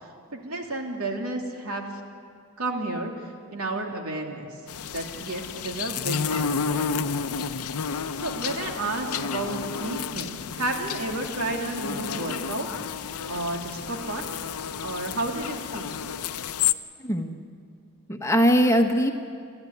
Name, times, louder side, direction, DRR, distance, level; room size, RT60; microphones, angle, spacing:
voice 1, 0.0-1.8 2.6-4.5 4.9-7.1 8.2-12.7 13.2-14.3 14.8-15.9, right 2 dB, 80° right, 2 dB, 2.9 m, -32 dB
sound 1, 4.7-16.7, left 6 dB, 85° left, 0.7 m, -31 dB
voice 2, 17.0-17.4 18.1-19.1, equal, 15° left, 4 dB, 1.2 m, -21 dB
29.5 x 13.0 x 9.5 m, 2.3 s
head